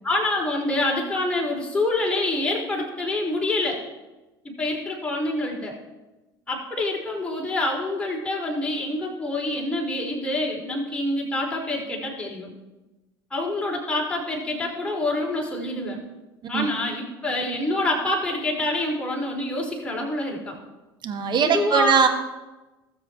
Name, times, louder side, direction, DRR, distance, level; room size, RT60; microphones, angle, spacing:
voice 1, 0.0-3.8 4.4-5.7 6.5-12.5 13.3-16.0 16.5-20.6 21.4-22.0, left 2 dB, 10° left, -2 dB, 4.4 m, -26 dB
voice 2, 21.0-22.1, right 7 dB, 40° right, 6 dB, 1.8 m, -20 dB
19.5 x 7.6 x 4.6 m, 1.1 s
figure-of-eight pair, 70°, 12 cm